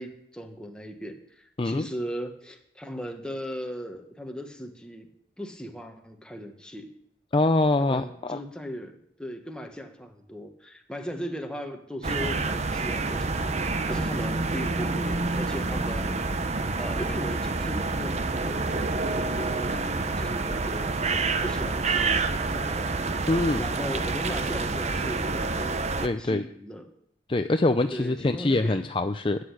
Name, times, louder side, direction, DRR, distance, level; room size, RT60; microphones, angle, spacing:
voice 1, 0.0-5.1 5.4-6.9 7.8-16.3 16.8-21.0 21.4-22.9 23.6-26.8 27.9-28.9, equal, 5° left, 3 dB, 1.6 m, -38 dB
voice 2, 7.3-8.4 23.3-23.6 26.0-26.5 27.3-29.4, left 2 dB, 30° left, 8 dB, 0.5 m, -24 dB
sound 1, 12.0-26.1, right 3 dB, 35° right, 0.8 m, -28 dB
12.5 x 8.5 x 10.0 m, 0.72 s
head